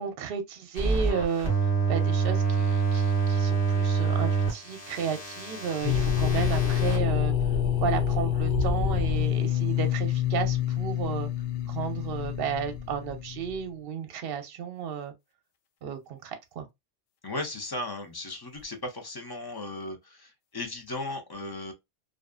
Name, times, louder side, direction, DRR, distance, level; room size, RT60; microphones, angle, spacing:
voice 1, 0.0-7.3 7.8-11.3 11.7-15.1 15.8-16.7, right 7 dB, 65° right, 0.7 m, -33 dB
sound 1, 0.8-7.0, right 5 dB, 55° left, 1.2 m, -27 dB
sound 2, 5.8-13.6, left 8 dB, 90° left, 0.9 m, -27 dB
voice 2, 17.2-21.7, left 2 dB, 35° left, 0.4 m, -36 dB
2.4 x 2.3 x 2.2 m
omnidirectional pair, 1.1 m